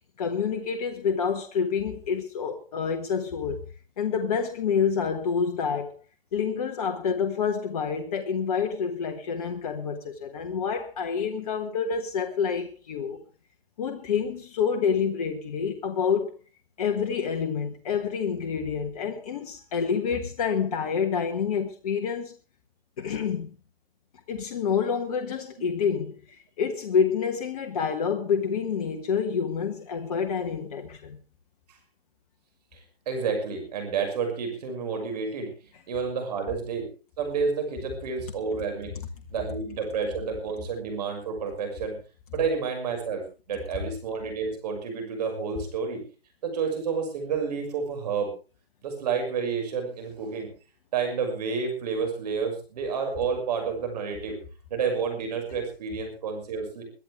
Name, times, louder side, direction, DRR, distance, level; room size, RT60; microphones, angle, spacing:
voice 1, 0.2-3.6 4.0-5.9 6.3-13.2 13.8-16.3 16.8-22.3 23.0-23.5 24.3-31.2, left 6 dB, 35° left, 1.5 m, -28 dB
voice 2, 33.1-35.5 35.9-36.9 37.2-38.9 39.3-42.0 42.3-46.0 46.4-48.3 48.8-50.5 50.9-54.4 54.7-56.8, right 5 dB, 40° right, 6.4 m, -30 dB
23.0 x 11.5 x 3.6 m
hypercardioid pair, 150°, 31 cm